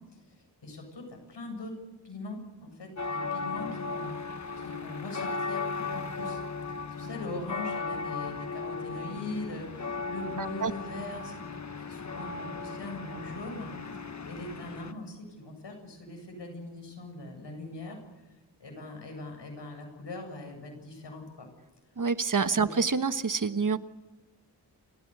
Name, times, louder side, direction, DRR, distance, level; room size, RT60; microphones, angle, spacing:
voice 1, 0.6-1.8 2.0-4.3 4.6-6.4 6.9-11.4 11.8-13.7 14.2-18.0 18.6-21.5 22.6-22.7, left 2 dB, 80° left, 3 dB, 7.9 m, -41 dB
sound 1, 3.0-14.9, left 4 dB, 40° left, 1.5 m, -36 dB
voice 2, 10.4-10.7 22.0-23.8, right 5 dB, 50° right, 11 dB, 1.3 m, -27 dB
30.0 x 15.5 x 8.1 m, 1.1 s
wide cardioid pair, 65°, 42 cm